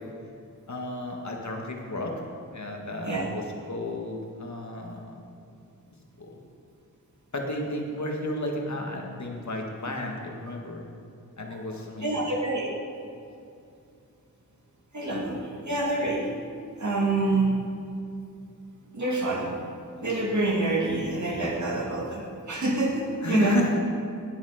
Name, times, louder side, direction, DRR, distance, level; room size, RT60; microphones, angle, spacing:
voice 1, 0.7-2.1 2.5-5.2 6.2-6.4 7.3-10.8 11.4-12.1 23.2-23.8, left 1 dB, 55° left, 1 dB, 1.7 m, -32 dB
voice 2, 12.0-12.7 14.9-15.4 15.7-16.2 16.8-17.5 18.9-19.5 20.0-23.6, right 2 dB, 60° right, -3 dB, 2.5 m, -26 dB
18.0 x 7.1 x 5.0 m, 2.5 s
wide cardioid pair, 90°, 33 cm